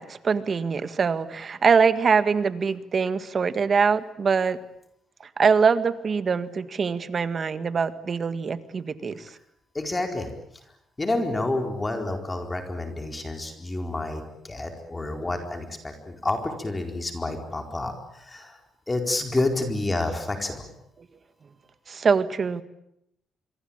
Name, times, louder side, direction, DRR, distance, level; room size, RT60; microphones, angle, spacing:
voice 1, 0.0-4.6 5.2-9.4 21.9-22.6, right 5 dB, 45° right, 12 dB, 1.8 m, -23 dB
voice 2, 9.7-10.3 11.0-18.6 18.9-20.7, left 2 dB, 20° left, 4 dB, 4.4 m, -29 dB
26.0 x 23.0 x 9.0 m, 0.78 s
cardioid pair, 90°, 0 cm